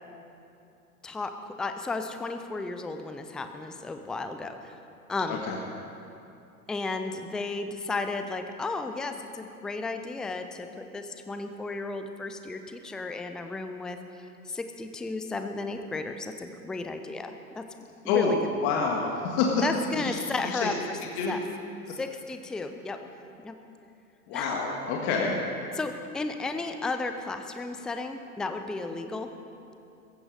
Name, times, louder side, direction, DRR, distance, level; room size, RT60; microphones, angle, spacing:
voice 1, 1.0-4.8 5.1-5.4 6.7-17.7 18.0-18.4 19.6-21.0 21.3-21.4 22.0-23.0 23.4-23.6 24.3-24.5 25.7-29.3, left 3 dB, ahead, 7 dB, 0.4 m, -34 dB
voice 2, 18.6-19.6 19.9-20.1 20.4-20.7 21.2-21.4 24.3-25.4, left 5 dB, 45° left, -1 dB, 2.0 m, -27 dB
15.5 x 14.5 x 5.0 m, 2.7 s
hypercardioid pair, 100°, 44 cm